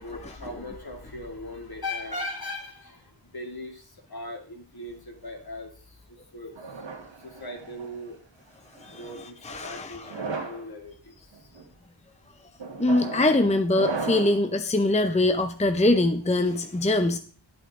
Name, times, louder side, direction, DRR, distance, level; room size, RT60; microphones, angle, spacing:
voice 1, 0.0-6.0 6.3-6.7 7.2-8.2 8.9-11.3, left 1 dB, 50° left, 2 dB, 2.5 m, -39 dB
sound 1, 6.6-8.0 8.8-9.1 10.0-10.6 11.3-11.6 12.6-14.5, right 4 dB, 70° right, 1.5 m, -35 dB
voice 2, 9.4-10.2 12.8-17.2, left 2 dB, 15° left, 7 dB, 0.7 m, -23 dB
10.5 x 8.8 x 3.7 m, 0.42 s
wide cardioid pair, 60°, 46 cm